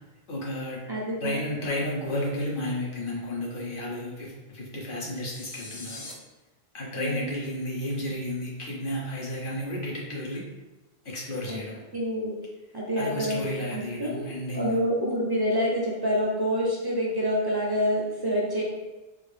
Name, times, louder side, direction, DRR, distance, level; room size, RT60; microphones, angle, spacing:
voice 1, 0.3-0.9 1.2-6.0 6.7-10.4 11.0-11.8 13.0-14.8, left 1 dB, 60° left, -4 dB, 1.0 m, -32 dB
voice 2, 0.9-1.4 6.9-7.3 11.5-11.6 11.9-12.3 12.7-14.2 14.5-18.6, equal, 35° right, -3 dB, 0.4 m, -27 dB
sound 1, 5.2-6.1, left 2 dB, 35° left, 0.5 m, -42 dB
3.3 x 2.4 x 3.3 m, 1.1 s
omnidirectional pair, 1.0 m